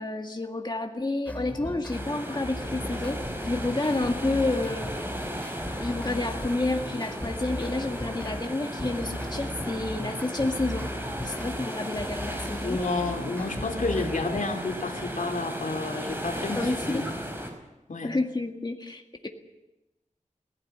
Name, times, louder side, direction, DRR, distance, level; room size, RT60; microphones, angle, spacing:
voice 1, 0.0-4.9 5.7-10.9 11.2-12.8 16.6-17.1 18.0-19.3, left 2 dB, 35° left, 3 dB, 1.9 m, -30 dB
sound 1, 1.3-2.0 2.4-8.4 8.8-14.4, left 1 dB, 10° left, 2.9 m, -37 dB
sound 2, 1.9-17.5, equal, 15° right, 5.2 m, -35 dB
voice 2, 12.6-17.1 17.9-18.1, left 3 dB, 85° left, 4 dB, 2.6 m, -30 dB
19.5 x 16.5 x 9.3 m, 0.99 s
wide cardioid pair, 75°, 13 cm